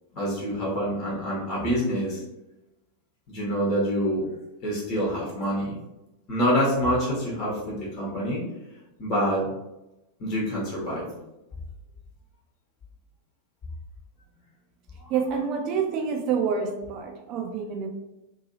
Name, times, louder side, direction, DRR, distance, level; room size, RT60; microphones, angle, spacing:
voice 1, 0.1-2.2 3.3-4.2 4.6-5.8 6.3-8.4 9.0-9.5 10.2-11.2 15.0-15.1, equal, 35° left, -5 dB, 1.0 m, -26 dB
voice 2, 15.1-17.9, right 6 dB, 40° right, 4 dB, 0.5 m, -27 dB
2.7 x 2.7 x 2.7 m, 0.95 s
figure-of-eight pair, 90°, 0 cm